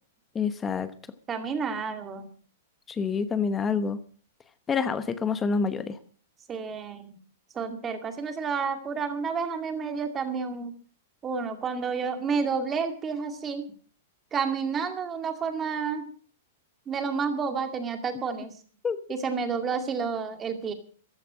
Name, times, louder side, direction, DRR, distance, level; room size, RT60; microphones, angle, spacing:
voice 1, 0.3-0.9 2.9-4.0 4.7-6.0 18.8-19.0, left 5 dB, 15° left, 12 dB, 0.9 m, -27 dB
voice 2, 1.3-2.3 6.5-7.2 7.5-10.7 11.2-13.6 14.3-16.0 16.9-18.5 19.1-20.7, right 5 dB, 15° right, 7 dB, 2.2 m, -30 dB
15.0 x 11.5 x 6.2 m, 0.43 s
hypercardioid pair, 160°, 0 cm